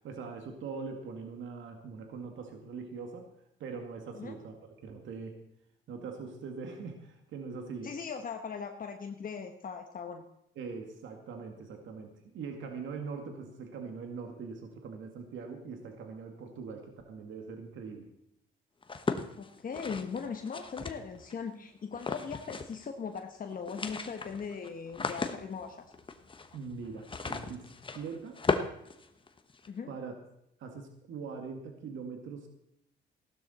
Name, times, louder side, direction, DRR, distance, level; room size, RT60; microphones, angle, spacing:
voice 1, 0.0-3.3 3.6-5.4 5.9-7.9 10.6-18.1 26.5-28.4 29.9-30.1 30.6-32.5, right 5 dB, 75° right, 4 dB, 2.0 m, -42 dB
voice 2, 7.8-10.2 19.3-25.9 29.7-29.9, left 6 dB, 45° left, 4 dB, 1.2 m, -39 dB
sound 1, 18.8-21.3 21.9-22.9 23.1-23.2 23.5-29.7, left 4 dB, 25° left, 1.1 m, -36 dB
16.0 x 12.0 x 4.3 m, 0.78 s
cardioid pair, 90°, 20 cm